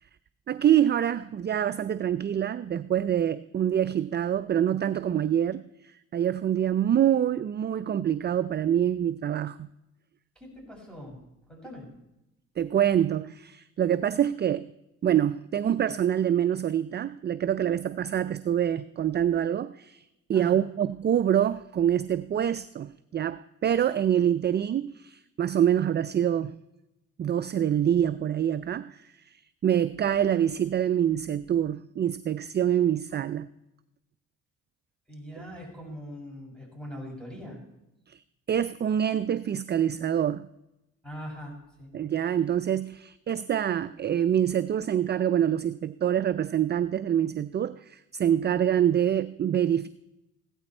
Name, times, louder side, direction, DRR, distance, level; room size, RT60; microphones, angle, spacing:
voice 1, 0.5-9.7 12.6-14.7 15.0-26.6 27.2-33.5 38.1-38.2 38.5-40.5 41.9-49.9, right 10 dB, 35° right, 14 dB, 0.4 m, -26 dB
voice 2, 10.4-11.2 11.5-11.9 20.3-20.6 35.1-37.6 41.0-41.9, equal, 5° left, -1 dB, 6.0 m, -42 dB
16.0 x 12.5 x 4.4 m, 0.91 s
cardioid pair, 90°, 30 cm